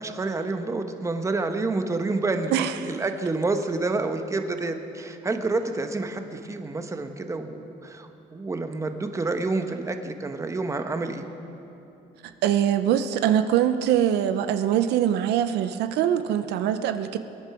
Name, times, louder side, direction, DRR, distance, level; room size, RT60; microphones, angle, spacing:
voice 1, 0.0-2.6 2.8-11.3, right 3 dB, 20° right, 7 dB, 1.0 m, -28 dB
voice 2, 2.5-3.0 12.4-17.2, right 10 dB, 80° right, 10 dB, 0.6 m, -23 dB
22.0 x 9.9 x 4.8 m, 2.9 s
cardioid pair, 110°, 17 cm